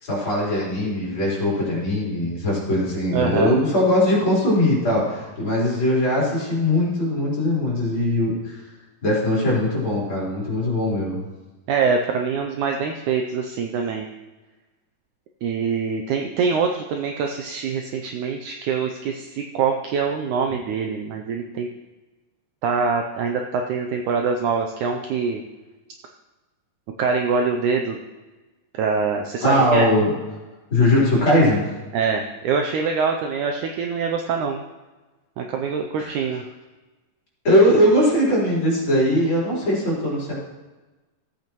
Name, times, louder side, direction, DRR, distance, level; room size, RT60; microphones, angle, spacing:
voice 1, 0.0-8.6 9.0-11.2 29.4-30.1 30.7-31.6 36.0-36.1 37.4-40.3, left 1 dB, 35° left, -7 dB, 4.3 m, -20 dB
voice 2, 3.1-3.6 11.7-14.1 15.4-21.7 22.6-25.4 27.0-28.0 28.7-29.9 31.9-34.6 35.4-36.4, right 5 dB, 75° right, 3 dB, 1.8 m, -24 dB
15.5 x 8.4 x 3.0 m, 1.2 s
omnidirectional pair, 4.0 m